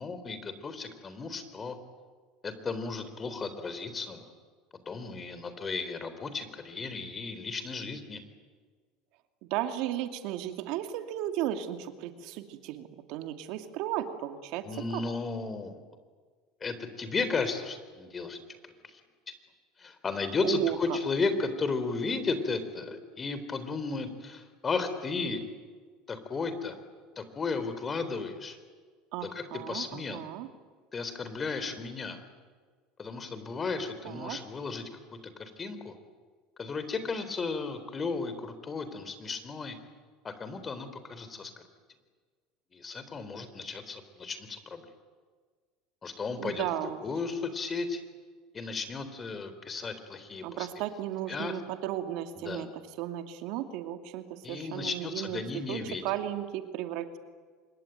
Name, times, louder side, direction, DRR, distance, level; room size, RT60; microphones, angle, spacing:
voice 1, 0.0-1.8 2.4-4.3 4.9-8.2 14.6-15.8 16.6-18.5 18.9-19.0 19.8-25.4 26.1-26.8 27.2-28.6 29.2-30.2 30.9-32.2 33.0-34.9 35.4-35.9 36.6-39.8 40.2-41.5 42.7-44.9 46.0-48.0 48.5-50.7 51.3-51.5 52.4-52.7 54.4-56.0, left 4 dB, 25° left, 11 dB, 3.9 m, -34 dB
voice 2, 9.4-15.0 20.4-21.0 29.1-30.5 34.0-34.4 46.4-47.0 50.4-55.4 55.7-57.2, right 12 dB, 70° right, 7 dB, 2.4 m, -35 dB
26.0 x 22.0 x 9.4 m, 1.5 s
supercardioid pair, 105°, 0 cm